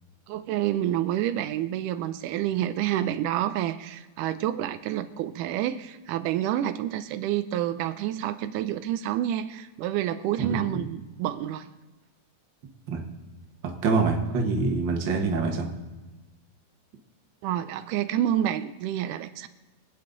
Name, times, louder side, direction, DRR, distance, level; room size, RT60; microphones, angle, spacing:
voice 1, 0.3-11.7 17.4-19.5, right 11 dB, 85° right, 11 dB, 2.1 m, -28 dB
voice 2, 10.4-10.8 12.9-13.0 13.6-15.7, right 4 dB, 45° right, 2 dB, 1.8 m, -25 dB
25.0 x 8.7 x 3.9 m, 1.2 s
omnidirectional pair, 3.6 m